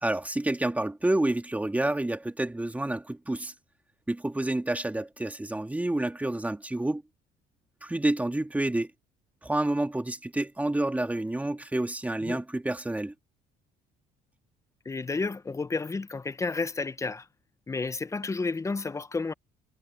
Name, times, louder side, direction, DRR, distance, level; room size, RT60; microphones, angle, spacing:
voice 1, 0.0-3.5 4.1-7.0 7.8-8.9 9.4-13.1, right 1 dB, 10° right, 2.1 m, -29 dB
voice 2, 14.8-17.3 17.7-19.3, left 3 dB, 15° left, 0.7 m, -31 dB
cardioid pair, 110°, 17 cm